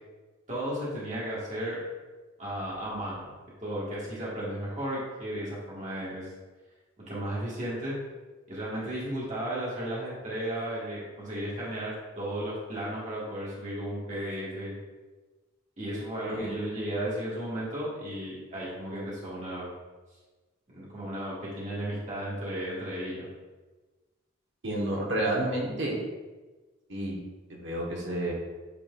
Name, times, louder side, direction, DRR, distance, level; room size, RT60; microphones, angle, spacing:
voice 1, 0.5-1.8 2.4-3.3 3.6-6.3 7.1-8.0 8.5-14.8 15.8-19.7 20.7-23.3, right 1 dB, 35° right, -7 dB, 1.8 m, -34 dB
voice 2, 24.6-26.0 26.9-27.2 27.5-28.3, right 1 dB, 65° right, -2 dB, 1.3 m, -30 dB
8.7 x 4.5 x 2.5 m, 1.3 s
head